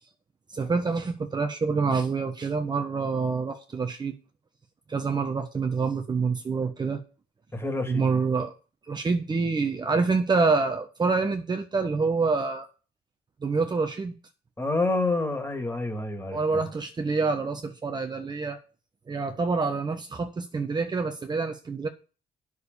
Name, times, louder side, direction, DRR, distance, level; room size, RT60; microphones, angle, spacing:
voice 1, 0.5-4.2 4.9-7.0 7.8-8.5 8.9-12.7 13.4-14.1 16.3-18.6 19.1-21.9, right 4 dB, 25° right, 5 dB, 1.2 m, -27 dB
voice 2, 7.5-8.2 14.6-16.6, left 2 dB, 15° left, 6 dB, 2.7 m, -28 dB
9.5 x 6.6 x 7.0 m, 0.34 s
cardioid pair, 110°, 17 cm